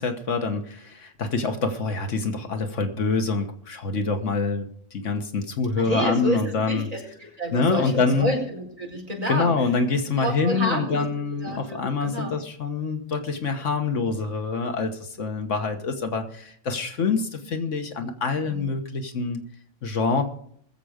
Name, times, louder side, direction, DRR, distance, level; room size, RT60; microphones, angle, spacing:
voice 1, 0.0-6.9 7.5-8.3 9.3-19.4 19.8-20.2, left 4 dB, 80° left, 6 dB, 1.6 m, -26 dB
voice 2, 5.8-9.5 10.2-11.0 11.4-12.4, equal, 30° right, -1 dB, 4.8 m, -29 dB
20.5 x 7.6 x 5.0 m, 0.64 s
omnidirectional pair, 1.3 m